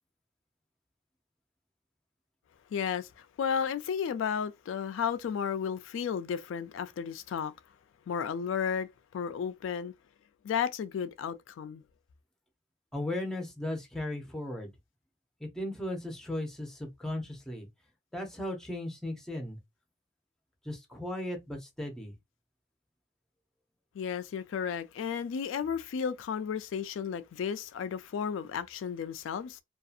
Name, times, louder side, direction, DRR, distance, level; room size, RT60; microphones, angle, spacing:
voice 1, 2.7-7.5 8.1-9.9 10.4-11.8 24.0-29.6, left 7 dB, 80° left, 0.3 m, -33 dB
voice 2, 12.9-14.7 15.4-17.7 18.1-19.6 20.6-22.1, left 1 dB, 5° left, 0.6 m, -36 dB
2.6 x 2.3 x 2.4 m
head